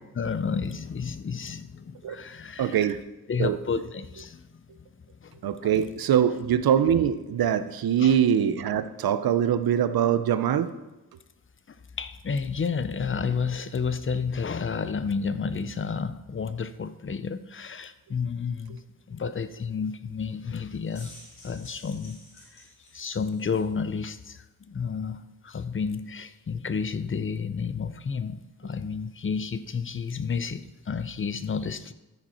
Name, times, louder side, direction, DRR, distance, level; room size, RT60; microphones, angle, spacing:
voice 1, 0.2-2.8 3.3-4.5 5.2-5.7 8.0-8.1 11.7-18.8 19.1-21.1 21.4-22.2 22.5-22.7 22.9-31.9, left 5 dB, 35° left, 13 dB, 0.6 m, -31 dB
voice 2, 2.6-3.0 3.4-3.6 5.4-10.7, right 9 dB, 90° right, 11 dB, 0.6 m, -23 dB
sound 1, 20.7-23.7, left 1 dB, 60° left, 3.9 m, -51 dB
13.5 x 5.1 x 4.3 m, 1.0 s
cardioid pair, 70°, 35 cm